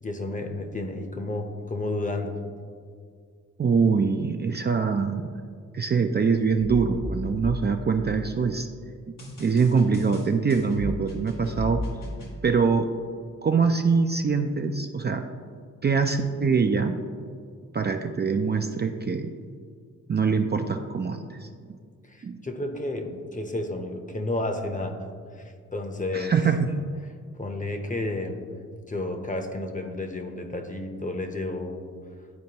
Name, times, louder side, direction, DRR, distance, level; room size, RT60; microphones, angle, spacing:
voice 1, 0.0-2.4 22.0-25.0 25.3-26.4 27.3-28.4 28.9-31.9, left 2 dB, 25° left, 5 dB, 0.8 m, -31 dB
voice 2, 3.6-5.3 5.7-8.7 9.4-11.8 12.4-12.9 13.4-15.2 15.8-17.0 17.7-19.3 20.1-21.5 22.2-22.4 26.1-26.7, right 5 dB, 35° right, 5 dB, 0.4 m, -23 dB
sound 1, 6.6-8.4 9.2-12.3, left 1 dB, 90° left, 1.5 m, -35 dB
10.5 x 4.4 x 2.9 m, 2.1 s
cardioid pair, 60°, 31 cm